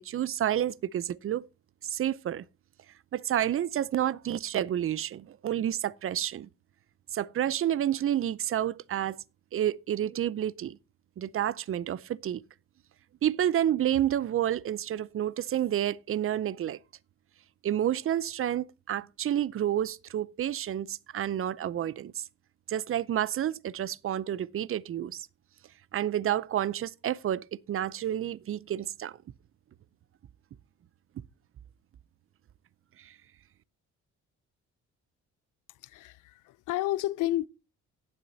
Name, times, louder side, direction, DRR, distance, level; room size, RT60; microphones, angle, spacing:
voice 1, 0.0-1.5 1.8-2.5 3.1-6.5 7.1-9.2 9.5-10.8 11.2-12.4 13.2-16.8 17.6-22.2 22.7-25.3 25.9-29.2 33.0-33.1, right 11 dB, 45° right, 0.6 m, -29 dB
voice 2, 35.8-37.5, left 15 dB, 85° left, 0.5 m, -31 dB
17.5 x 7.7 x 2.7 m
cardioid pair, 90°, 30 cm